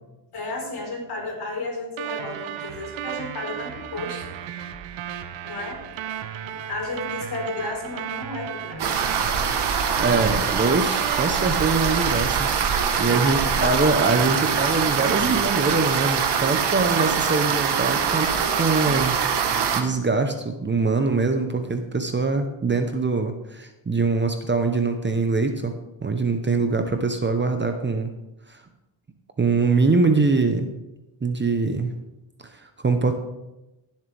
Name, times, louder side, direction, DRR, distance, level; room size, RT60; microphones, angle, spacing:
voice 1, 0.3-4.2 5.4-5.8 6.4-8.9 10.0-10.3 10.9-11.0 13.0-13.9, left 2 dB, 55° left, 0 dB, 4.5 m, -33 dB
sound 1, 2.0-17.9, right 10 dB, 80° right, 0.9 m, -34 dB
sound 2, 8.8-19.8, right 6 dB, 60° right, 1.3 m, -23 dB
voice 2, 10.0-12.5 13.0-19.2 19.7-25.7 26.0-28.1 28.5-28.6 29.4-30.7 31.2-31.9 32.5-33.1, right 3 dB, 25° right, 6 dB, 1.0 m, -23 dB
16.5 x 7.5 x 3.5 m, 0.98 s
cardioid pair, 90°, 45 cm